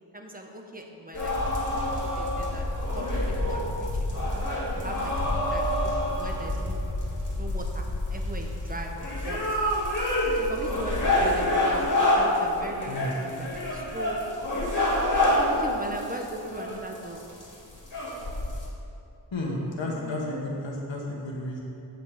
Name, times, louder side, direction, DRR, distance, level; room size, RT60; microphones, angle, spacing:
voice 1, 0.1-1.4 1.7-4.2 4.7-6.8 7.4-7.8 8.1-9.4 10.3-14.2 15.3-17.3 19.4-20.4, right 1 dB, 20° right, 2 dB, 1.2 m, -39 dB
sound 1, 1.1-18.7, left 1 dB, 45° left, 2.5 m, -27 dB
voice 2, 12.8-13.1 19.3-21.6, left 1 dB, 85° left, -2 dB, 1.3 m, -32 dB
7.7 x 5.6 x 7.6 m, 2.7 s
wide cardioid pair, 50°, 44 cm